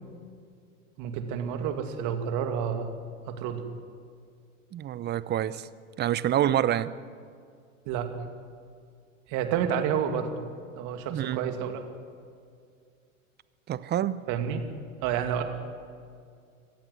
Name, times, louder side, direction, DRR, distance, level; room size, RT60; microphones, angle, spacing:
voice 1, 1.0-2.9 3.3-3.6 7.9-8.1 9.3-10.3 10.8-11.9 14.3-14.6 15.0-15.4, right 8 dB, 50° right, 6 dB, 2.4 m, -29 dB
voice 2, 4.7-5.7 6.0-6.9 11.1-11.5 13.7-14.2, right 11 dB, 25° right, 17 dB, 0.7 m, -27 dB
26.0 x 15.0 x 7.8 m, 2.2 s
hypercardioid pair, 85°, 40 cm